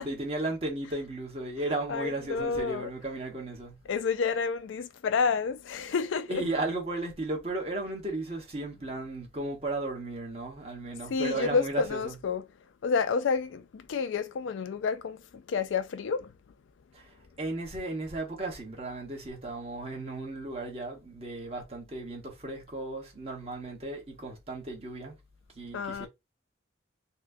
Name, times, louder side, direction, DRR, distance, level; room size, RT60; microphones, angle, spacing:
voice 1, 0.0-3.8 6.3-12.2 16.9-25.1 25.5-26.1, right 2 dB, 30° right, 1.1 m, -35 dB
voice 2, 1.9-2.9 3.9-6.4 11.1-12.4 12.8-16.3 25.7-26.1, left 5 dB, 70° left, 0.4 m, -29 dB
4.2 x 2.2 x 2.6 m
head